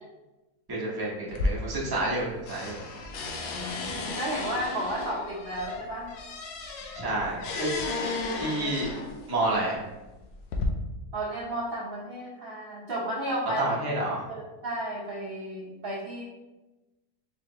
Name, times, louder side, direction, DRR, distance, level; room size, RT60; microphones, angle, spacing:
voice 1, 0.7-2.8 6.9-7.7 8.4-8.9 9.3-9.7 13.6-14.2, right 2 dB, 20° right, -5 dB, 0.8 m, -29 dB
sound 1, 1.3-2.2 2.5-9.3 10.0-10.7, left 3 dB, 85° left, 1.2 m, -34 dB
voice 2, 3.5-6.1 11.1-13.6 14.3-16.2, right 1 dB, 50° right, -7 dB, 0.8 m, -33 dB
4.4 x 3.2 x 2.8 m, 1.1 s
omnidirectional pair, 1.6 m